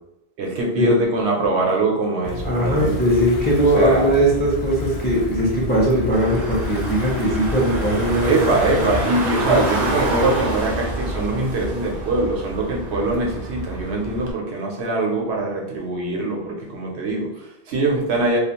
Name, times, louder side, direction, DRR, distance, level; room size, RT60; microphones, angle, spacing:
voice 1, 0.4-3.0 3.8-4.1 8.2-18.4, right 2 dB, 85° right, -1 dB, 0.9 m, -22 dB
sound 1, 2.2-9.1, left 3 dB, 65° left, 0.8 m, -30 dB
voice 2, 2.4-8.5 8.7-9.2 9.5-9.6, right 1 dB, 15° left, -4 dB, 0.4 m, -20 dB
Car / Engine, 6.1-14.3, right 2 dB, 50° right, 0.6 m, -28 dB
2.5 x 2.3 x 2.9 m, 0.85 s
omnidirectional pair, 1.1 m